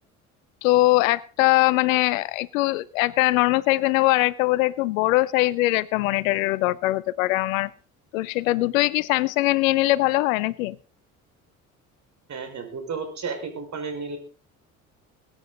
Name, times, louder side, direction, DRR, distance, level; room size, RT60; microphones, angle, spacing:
voice 1, 0.6-7.7 8.1-10.8, left 19 dB, 65° left, 22 dB, 0.7 m, -21 dB
voice 2, 12.3-14.2, right 4 dB, 40° right, 5 dB, 5.4 m, -32 dB
21.5 x 9.8 x 4.0 m, 0.37 s
figure-of-eight pair, 55°, 42 cm